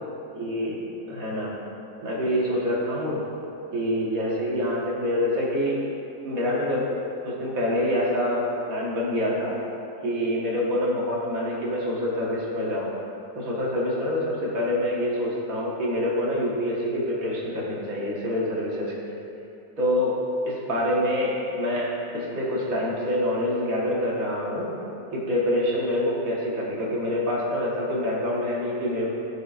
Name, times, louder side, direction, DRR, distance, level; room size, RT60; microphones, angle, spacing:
voice 1, 0.4-1.5 2.0-3.2 3.7-5.8 6.2-6.9 7.2-9.5 10.0-12.9 13.4-19.1 19.8-20.2 20.5-24.7 25.1-29.1, left 1 dB, 60° right, -5 dB, 1.8 m, -26 dB
14.0 x 5.4 x 2.4 m, 2.8 s
omnidirectional pair, 1.7 m